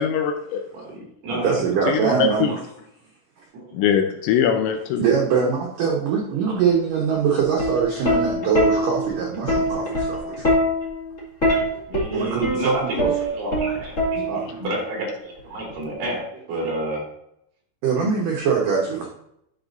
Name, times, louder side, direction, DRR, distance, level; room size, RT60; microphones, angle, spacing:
voice 1, 0.0-0.6 1.9-2.6 3.7-5.0, left 7 dB, 85° left, 5 dB, 2.6 m, -22 dB
voice 2, 0.7-1.6 3.5-3.8 11.9-14.3 14.6-16.2 16.5-17.0, right 1 dB, 45° right, -4 dB, 4.3 m, -30 dB
voice 3, 1.3-2.6 5.0-10.5 12.1-13.1 14.3-14.5 17.8-19.1, right 6 dB, 90° right, -2 dB, 1.8 m, -23 dB
Plucked string instrument, 7.4-14.6 15.7-16.0, equal, 40° left, 1.0 m, -23 dB
11.5 x 6.1 x 2.7 m, 0.76 s
omnidirectional pair, 5.7 m